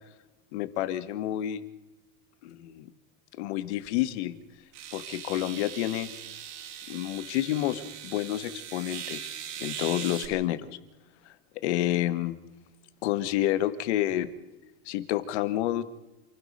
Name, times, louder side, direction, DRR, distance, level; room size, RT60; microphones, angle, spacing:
voice 1, 0.5-1.6 2.4-2.9 3.3-4.4 4.9-6.1 6.9-10.7 11.2-12.4 13.0-14.3 14.8-15.8, left 13 dB, 50° left, 12 dB, 1.6 m, -29 dB
sound 1, 3.9-4.0 4.7-10.3, right 9 dB, 60° right, 4.3 m, -40 dB
28.0 x 16.0 x 6.7 m, 1.0 s
supercardioid pair, 175°, 42 cm